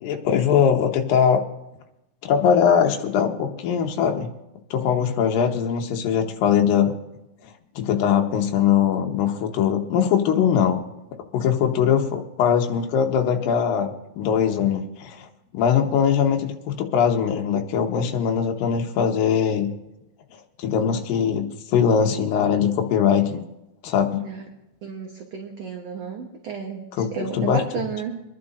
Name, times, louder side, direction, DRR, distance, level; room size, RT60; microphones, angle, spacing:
voice 1, 0.0-1.4 2.2-4.3 4.7-6.9 7.8-10.8 11.3-15.3 15.5-19.7 20.6-23.4 23.8-24.3 26.9-27.6, left 8 dB, 80° left, 3 dB, 2.8 m, -21 dB
voice 2, 24.8-28.2, right 6 dB, 60° right, 2 dB, 1.8 m, -32 dB
25.5 x 11.0 x 2.6 m, 0.91 s
omnidirectional pair, 4.1 m